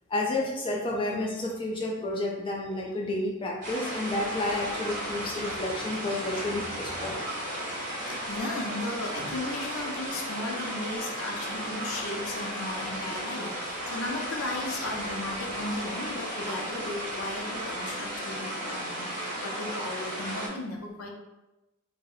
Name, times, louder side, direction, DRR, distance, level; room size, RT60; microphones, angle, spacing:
voice 1, 0.1-7.2, left 2 dB, 25° left, -1 dB, 0.3 m, -31 dB
sound 1, 3.6-20.5, equal, 35° right, 0.7 m, -34 dB
voice 2, 7.9-21.1, left 2 dB, 90° left, 1 dB, 0.5 m, -36 dB
2.7 x 2.0 x 2.4 m, 1.0 s
head